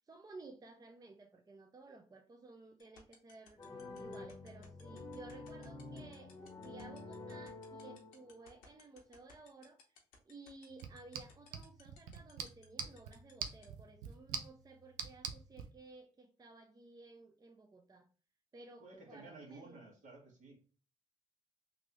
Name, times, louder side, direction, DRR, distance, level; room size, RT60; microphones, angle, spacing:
voice 1, 0.0-10.0 10.3-18.1 18.5-19.8, right 3 dB, 25° right, 0.5 m, -56 dB
sound 1, 2.8-13.6, left 8 dB, 85° left, 0.6 m, -60 dB
sound 2, 3.6-8.5, left 2 dB, 25° left, 0.8 m, -49 dB
sound 3, 10.7-15.7, right 7 dB, 85° right, 0.4 m, -46 dB
voice 2, 18.8-20.5, right 3 dB, 60° right, 1.4 m, -54 dB
3.0 x 2.6 x 2.9 m
hypercardioid pair, 50°, 14 cm